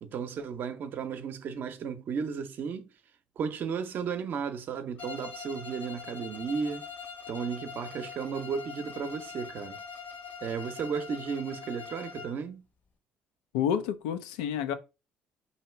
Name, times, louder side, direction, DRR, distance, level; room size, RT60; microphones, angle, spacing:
voice 1, 0.0-2.9 3.4-6.9 7.3-9.8 10.4-12.6, right 6 dB, 60° right, 0.6 m, -34 dB
Bowed string instrument, 5.0-12.4, left 6 dB, 60° left, 1.1 m, -43 dB
voice 2, 13.5-14.7, left 8 dB, 90° left, 0.4 m, -29 dB
2.9 x 2.8 x 4.4 m
supercardioid pair, 60°, 4 cm